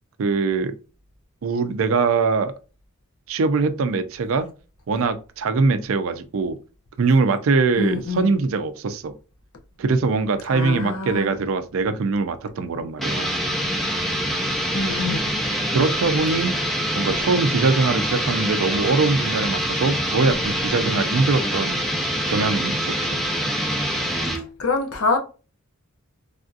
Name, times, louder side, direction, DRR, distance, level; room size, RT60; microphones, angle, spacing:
voice 1, 0.2-0.7 1.4-2.5 3.3-4.5 4.9-6.6 7.0-9.1 9.8-13.3 15.7-16.6 16.9-21.8 22.3-23.2, right 4 dB, 65° right, 0.4 m, -22 dB
voice 2, 7.8-8.3 10.5-11.3 14.7-15.3 24.6-25.2, left 3 dB, 75° left, 0.7 m, -25 dB
sound 1, 13.0-24.5, equal, ahead, 0.6 m, -25 dB
3.4 x 2.6 x 2.4 m
head